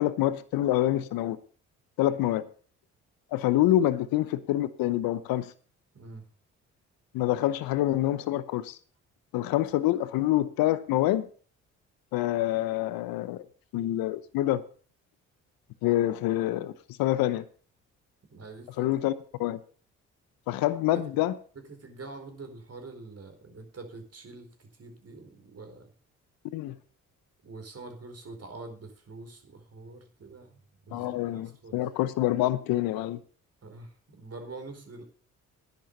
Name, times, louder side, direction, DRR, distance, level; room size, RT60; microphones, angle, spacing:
voice 1, 0.0-1.4 2.0-2.4 3.3-5.5 7.1-8.8 9.3-11.3 12.1-13.4 13.7-14.6 15.8-16.7 17.0-17.4 18.8-19.1 19.4-19.6 20.5-21.3 26.5-26.8 30.9-33.2, left 14 dB, 75° left, 0.9 m, -26 dB
voice 2, 5.9-6.3 18.3-18.9 20.9-21.2 21.7-25.9 27.4-30.6 30.9-31.8 33.6-35.0, right 3 dB, 40° right, 4.4 m, -45 dB
10.5 x 8.3 x 6.6 m
hypercardioid pair, 50°, 36 cm